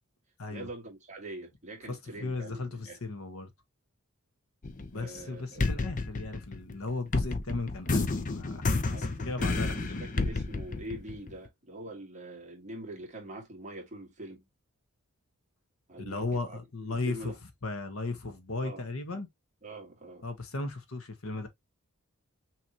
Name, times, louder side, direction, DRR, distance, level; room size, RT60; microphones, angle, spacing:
voice 1, 0.5-3.0 4.9-5.6 8.7-14.5 15.9-16.6 16.9-17.4 18.6-18.9 19.6-20.3, right 1 dB, 30° right, 1.9 m, -44 dB
voice 2, 1.9-3.5 4.9-10.0 16.1-17.3 17.6-19.3 20.2-21.5, left 3 dB, 70° left, 1.3 m, -36 dB
sound 1, 4.6-5.2 5.6-11.5, left 3 dB, 35° left, 0.6 m, -30 dB
5.8 x 3.2 x 2.8 m
head